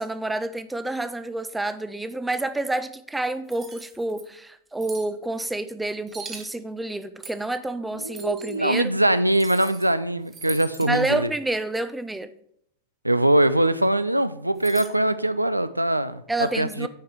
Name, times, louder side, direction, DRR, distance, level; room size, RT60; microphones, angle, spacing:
voice 1, 0.0-8.9 10.9-12.3 16.3-16.9, right 2 dB, 5° right, 12 dB, 0.5 m, -28 dB
sound 1, 3.5-4.2 4.8-5.1 6.1-6.5 7.2-7.5 8.1-8.6 9.3-9.9 10.3-10.9 14.6-14.9, right 5 dB, 25° right, 1.1 m, -41 dB
voice 2, 8.0-11.3 13.0-16.2 16.6-16.9, right 1 dB, 85° right, 13 dB, 0.4 m, -22 dB
9.3 x 4.7 x 4.6 m, 0.72 s
figure-of-eight pair, 90°, 0 cm